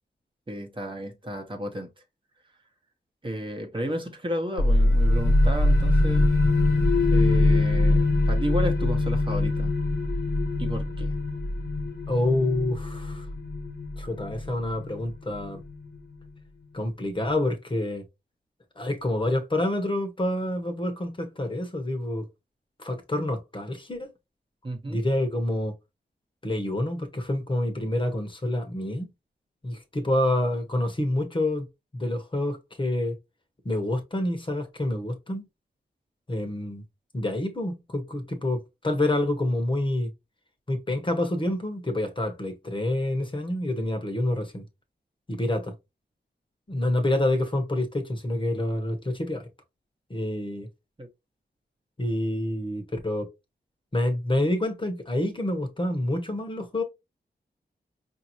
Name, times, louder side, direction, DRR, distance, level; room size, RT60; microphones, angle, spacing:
voice 1, 0.5-1.9 3.2-6.3 7.1-9.7 10.6-11.1 24.6-25.0 51.0-51.1, equal, 30° right, 1.0 m, -33 dB
sound 1, 4.6-16.0, left 2 dB, 70° left, 1.2 m, -23 dB
voice 2, 12.1-13.3 14.0-15.6 16.7-18.0 18.8-22.3 22.8-24.1 24.9-25.7 26.4-29.1 29.6-31.7 31.9-33.2 33.6-35.5 36.3-36.8 37.1-40.1 40.7-44.6 45.3-45.7 46.7-49.5 50.1-50.7 52.0-53.3 53.9-56.8, left 1 dB, 30° left, 1.0 m, -27 dB
5.1 x 2.7 x 2.9 m
wide cardioid pair, 80°, 18 cm